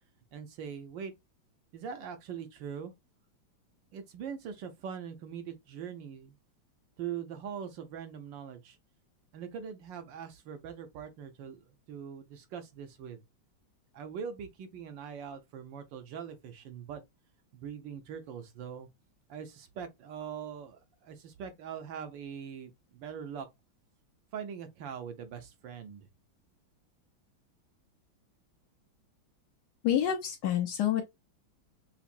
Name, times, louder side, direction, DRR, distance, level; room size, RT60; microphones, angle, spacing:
voice 1, 0.3-1.1 1.7-2.9 3.9-6.4 7.0-8.8 9.3-13.2 13.9-17.0 17.5-18.9 19.3-23.5 24.3-26.1, right 7 dB, 70° right, 1.4 m, -42 dB
voice 2, 29.8-31.0, left 10 dB, 70° left, 1.1 m, -28 dB
5.7 x 2.0 x 2.5 m
omnidirectional pair, 2.2 m